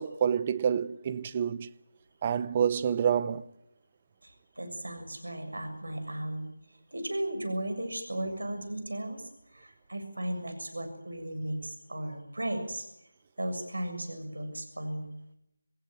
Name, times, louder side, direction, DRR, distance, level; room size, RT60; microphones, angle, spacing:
voice 1, 0.0-1.7 2.2-3.4, right 8 dB, 25° right, 0.9 m, -28 dB
voice 2, 4.2-6.5 6.9-12.9 13.4-15.1, right 1 dB, 75° right, 6.8 m, -36 dB
28.0 x 17.5 x 9.4 m
figure-of-eight pair, 160°, 0 cm